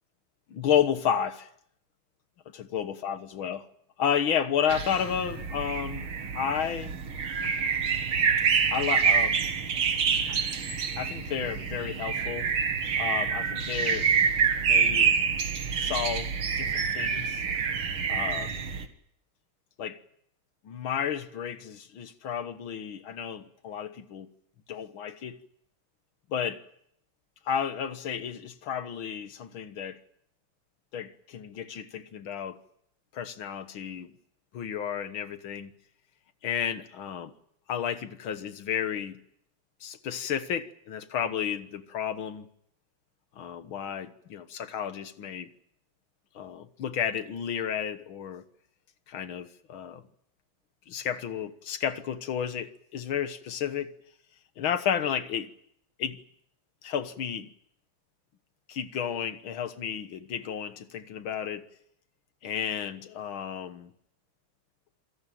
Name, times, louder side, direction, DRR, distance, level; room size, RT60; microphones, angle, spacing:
voice 1, 0.5-1.5 2.5-3.7 4.0-7.0 8.7-9.4 10.3-10.4 11.0-12.5 13.0-14.1 14.6-15.2 15.8-16.3 16.6-17.4 18.1-18.7 19.8-20.0 20.6-24.3 24.7-25.4 26.3-26.6 27.5-30.0 30.9-32.6 33.1-34.1 34.5-35.7 36.4-37.3 37.7-39.2 39.8-42.5 43.4-45.5 46.4-48.4 49.1-50.0 50.9-53.9 54.6-55.5 56.0-56.2 56.8-57.5 58.7-61.7 62.4-63.9, left 8 dB, 70° left, 2.1 m, -32 dB
sound 1, 4.7-18.9, right 6 dB, 80° right, 2.6 m, -27 dB
27.0 x 17.5 x 9.1 m
omnidirectional pair, 2.3 m